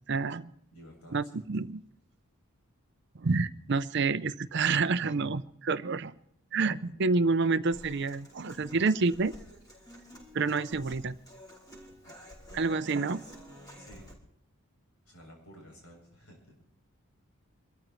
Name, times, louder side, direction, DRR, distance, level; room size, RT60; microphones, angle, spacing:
voice 1, 0.1-0.5 1.1-1.8 3.2-6.1 6.5-9.3 10.3-11.1 12.5-13.2, right 4 dB, 50° right, 13 dB, 0.6 m, -28 dB
voice 2, 0.7-1.4 6.5-7.1 11.9-12.1 13.8-14.1 15.0-16.6, equal, 80° left, 1 dB, 7.9 m, -53 dB
Human voice / Acoustic guitar, 7.7-14.1, equal, 20° left, 5.0 m, -50 dB
26.0 x 14.0 x 3.1 m, 0.70 s
head